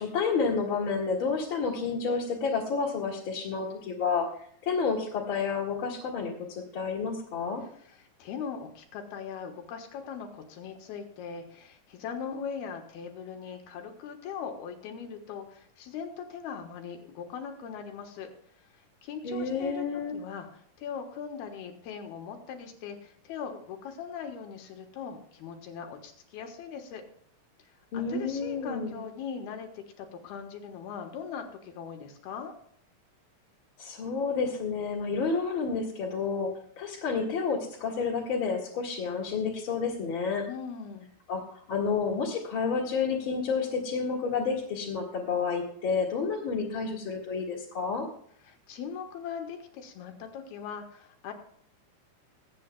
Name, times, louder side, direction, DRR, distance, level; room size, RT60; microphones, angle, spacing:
voice 1, 0.0-7.6 19.2-20.2 27.9-28.9 33.8-36.5 36.8-40.4 41.3-48.1, left 5 dB, 40° left, -4 dB, 2.2 m, -30 dB
voice 2, 7.9-18.3 19.0-19.8 20.1-27.0 28.1-32.5 40.5-41.1 48.5-51.3, left 6 dB, 80° left, 4 dB, 3.2 m, -40 dB
22.0 x 8.5 x 2.3 m, 0.63 s
omnidirectional pair, 4.4 m